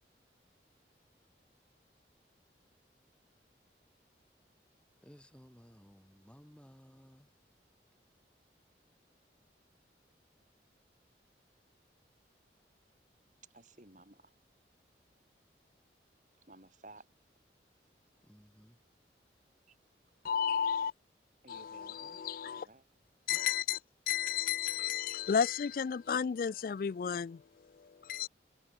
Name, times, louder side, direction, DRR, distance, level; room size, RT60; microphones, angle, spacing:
voice 1, 5.0-7.3 18.2-18.8, equal, 5° left, 3.1 m, -58 dB
voice 2, 13.5-14.4 16.4-17.3 19.7-19.8 21.4-22.2 22.5-22.8, right 2 dB, 45° right, 4.2 m, -56 dB
voice 3, 20.2-20.9 21.5-22.7 23.3-23.8 24.1-28.3, left 7 dB, 50° left, 0.3 m, -33 dB
head